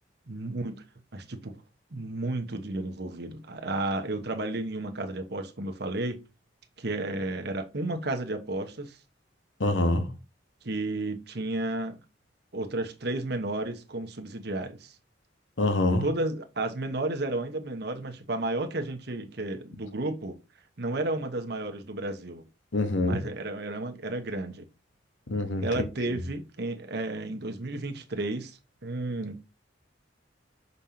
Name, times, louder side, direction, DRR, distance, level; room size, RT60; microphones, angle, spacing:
voice 1, 0.3-0.8 1.1-1.6 1.9-6.2 6.8-9.0 10.6-12.0 12.5-14.9 16.0-20.4 20.8-22.4 23.0-24.6 25.6-29.4, right 2 dB, 60° right, 1.1 m, -32 dB
voice 2, 9.6-10.1 15.6-16.0 22.7-23.2 25.3-25.9, left 2 dB, 85° left, 1.1 m, -25 dB
6.2 x 5.4 x 2.8 m
head